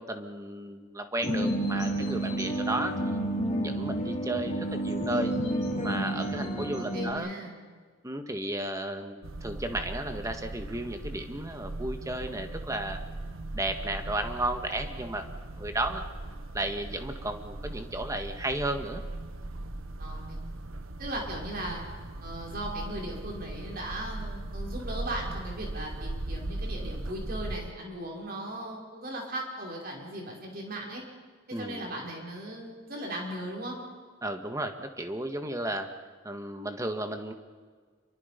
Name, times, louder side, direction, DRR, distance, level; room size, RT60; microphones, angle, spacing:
voice 1, 0.0-3.2 3.6-5.3 5.8-7.4 8.0-13.0 13.5-15.2 15.6-16.0 16.5-19.0 31.5-31.8 34.2-35.9 36.2-37.3, right 1 dB, 15° right, 6 dB, 1.7 m, -33 dB
sound 1, 1.2-7.1, right 1 dB, 35° left, 4.0 m, -30 dB
voice 2, 6.8-7.5 20.0-20.4 21.0-21.8 22.2-31.0 31.5-33.8, right 1 dB, 45° right, -1 dB, 5.8 m, -38 dB
sound 2, 9.2-27.6, right 2 dB, 90° right, 1.4 m, -39 dB
28.0 x 23.5 x 5.3 m, 1.5 s
head